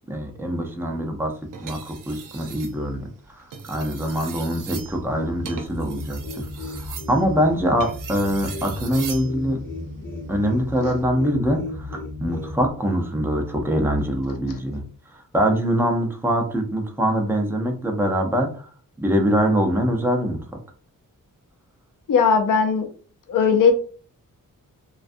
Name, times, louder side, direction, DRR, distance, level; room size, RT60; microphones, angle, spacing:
voice 1, 0.1-1.3 1.6-9.6 10.3-14.8 15.1-18.7 19.0-20.4, equal, 5° right, 2 dB, 0.5 m, -24 dB
sound 1, 1.5-2.8 3.4-9.3 10.7-11.0, right 6 dB, 70° right, 0.5 m, -39 dB
sound 2, 5.1-12.7, left 2 dB, 35° left, 0.7 m, -35 dB
voice 2, 22.1-22.9 23.3-23.7, left 5 dB, 75° left, 5 dB, 0.6 m, -18 dB
2.5 x 2.3 x 2.5 m, 0.41 s
wide cardioid pair, 90°, 33 cm